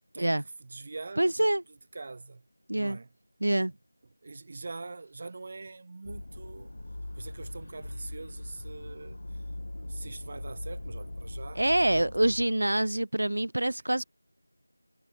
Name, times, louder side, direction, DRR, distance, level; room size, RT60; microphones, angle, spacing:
voice 1, 0.1-2.4 2.7-3.1 4.2-6.7 7.2-9.4 9.8-12.1, right 3 dB, 25° right, 3.5 m, -44 dB
voice 2, 1.2-1.6 2.7-3.0 3.4-3.7 11.6-14.0, right 1 dB, 65° right, 1.7 m, -26 dB
sound 1, 6.0-12.5, left 1 dB, 50° left, 2.4 m, -40 dB
figure-of-eight pair, 175°, 0 cm